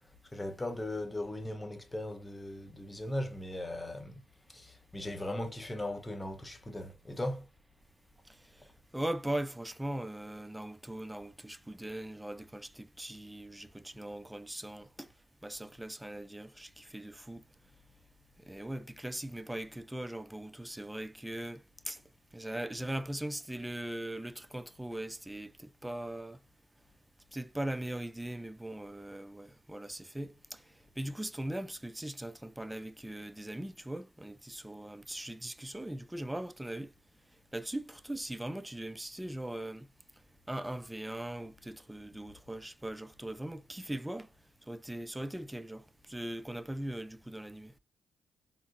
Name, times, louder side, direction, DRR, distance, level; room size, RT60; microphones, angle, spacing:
voice 1, 0.3-4.2 4.5-7.5, left 1 dB, 20° left, 1.0 m, -38 dB
voice 2, 8.9-15.1 15.4-17.4 18.4-22.0 22.3-26.4 27.3-30.6 31.0-36.9 37.5-39.9 40.5-44.3 44.7-47.7, right 1 dB, 10° right, 0.4 m, -40 dB
3.8 x 2.1 x 2.7 m
supercardioid pair, 50°, 0 cm